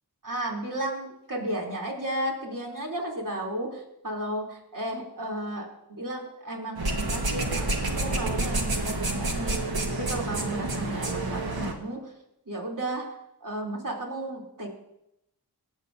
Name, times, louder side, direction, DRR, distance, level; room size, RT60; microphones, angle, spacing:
voice 1, 0.2-5.7 6.0-12.1 12.5-13.1 13.4-14.7, right 1 dB, 55° right, -2 dB, 3.3 m, -34 dB
sound 1, 6.8-11.7, right 2 dB, 70° right, 1.5 m, -28 dB
24.0 x 8.2 x 2.7 m, 0.83 s
wide cardioid pair, 55°, 39 cm